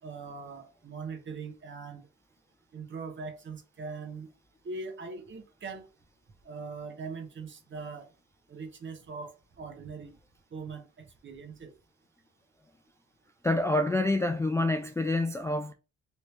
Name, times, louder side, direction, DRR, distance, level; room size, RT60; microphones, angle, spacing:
voice 1, 0.0-2.1 2.7-4.3 4.6-5.9 6.4-8.1 8.5-10.1 10.5-11.7, right 4 dB, 40° right, 1.0 m, -41 dB
voice 2, 13.4-15.7, left 2 dB, 10° left, 0.3 m, -27 dB
3.2 x 2.7 x 3.2 m
cardioid pair, 90°, 30 cm